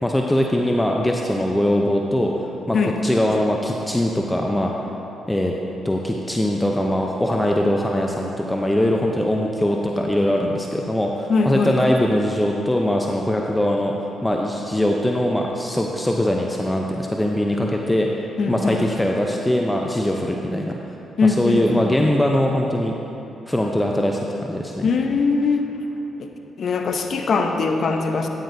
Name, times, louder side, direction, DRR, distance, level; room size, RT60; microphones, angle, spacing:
voice 1, 0.0-2.3 2.7-2.8 3.0-4.7 5.3-5.5 5.8-13.9 14.2-18.1 18.5-20.8 21.2-22.9 23.5-24.9, left 1 dB, 10° left, 0 dB, 0.6 m, -21 dB
voice 2, 11.3-11.8 18.4-18.8 21.2-22.1 24.8-25.7 26.2-26.3 26.6-28.3, left 4 dB, 60° left, 4 dB, 0.7 m, -21 dB
9.8 x 9.0 x 2.7 m, 3.0 s
supercardioid pair, 55°, 0 cm